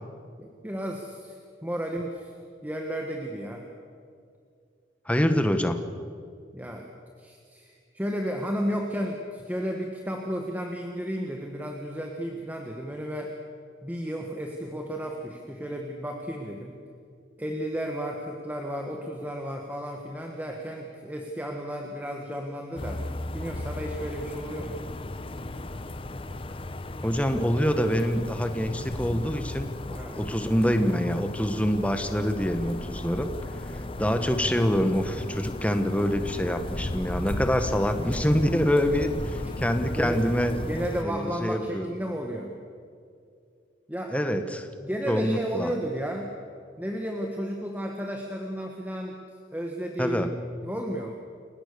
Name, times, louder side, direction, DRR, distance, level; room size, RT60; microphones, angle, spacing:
voice 1, 0.4-2.3 2.6-3.6 6.5-6.9 7.2-13.3 13.8-16.8 17.4-23.0 23.3-24.8 29.9-30.2 37.8-38.0 40.0-40.2 40.7-42.5 43.9-44.1 44.8-46.3 46.8-49.1 49.5-50.3 50.6-51.1, equal, 10° right, 1 dB, 1.6 m, -33 dB
voice 2, 5.0-5.8 27.0-33.3 34.0-40.6 41.0-41.9 44.1-44.7 45.1-45.7 50.0-50.3, equal, 5° left, 8 dB, 1.4 m, -25 dB
sound 1, 22.8-41.0, left 1 dB, 30° left, 0.9 m, -35 dB
30.0 x 17.5 x 6.9 m, 2.3 s
head